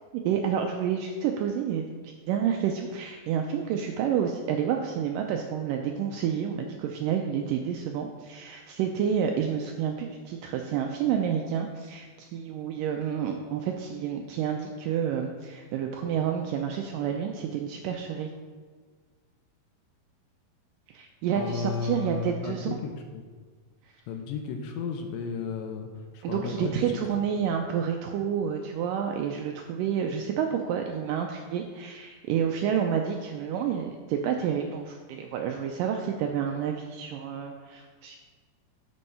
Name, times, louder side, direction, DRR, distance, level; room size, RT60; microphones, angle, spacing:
voice 1, 0.1-18.3 20.9-22.8 26.2-38.2, right 8 dB, 85° right, 3 dB, 1.9 m, -29 dB
voice 2, 21.4-23.2 24.1-25.9 26.1-26.8, left 5 dB, 80° left, 4 dB, 2.2 m, -33 dB
8.5 x 4.5 x 5.5 m, 1.5 s
omnidirectional pair, 4.3 m